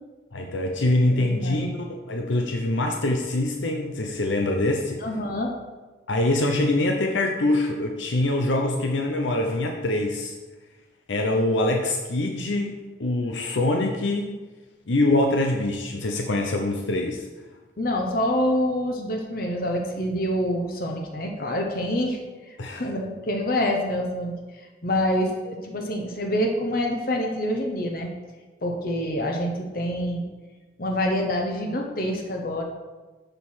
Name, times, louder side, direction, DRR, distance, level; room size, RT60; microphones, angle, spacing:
voice 1, 0.3-5.0 6.1-10.3 11.1-14.4 14.9-17.3 22.6-22.8, left 2 dB, 85° left, 2 dB, 0.8 m, -24 dB
voice 2, 1.2-1.8 5.0-5.5 17.8-22.2 22.5-24.4 24.8-28.1 28.6-30.3 30.8-32.6, equal, 50° left, 2 dB, 1.0 m, -26 dB
6.9 x 5.8 x 6.2 m, 1.2 s
head